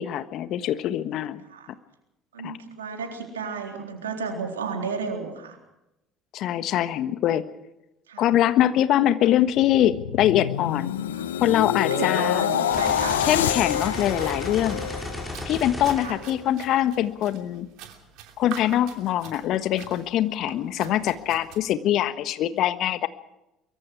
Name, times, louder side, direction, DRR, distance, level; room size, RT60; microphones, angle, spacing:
voice 1, 0.0-1.4 2.4-2.6 6.3-7.4 8.2-10.9 11.4-12.5 13.2-14.8 15.4-17.7 18.4-23.1, left 12 dB, 55° left, 12 dB, 1.4 m, -23 dB
voice 2, 2.3-5.6 8.1-8.3 11.1-11.2 11.8-13.2 16.0-16.1 20.8-21.0, right 5 dB, 80° right, 2 dB, 3.8 m, -33 dB
sound 1, 9.5-15.7 16.2-16.4, left 10 dB, 80° left, 0.8 m, -27 dB
sound 2, 12.7-16.9, left 1 dB, 10° left, 5.9 m, -35 dB
sound 3, 13.7-21.6, right 9 dB, 65° right, 3.0 m, -45 dB
23.5 x 23.5 x 4.7 m, 0.90 s
figure-of-eight pair, 60°, 0 cm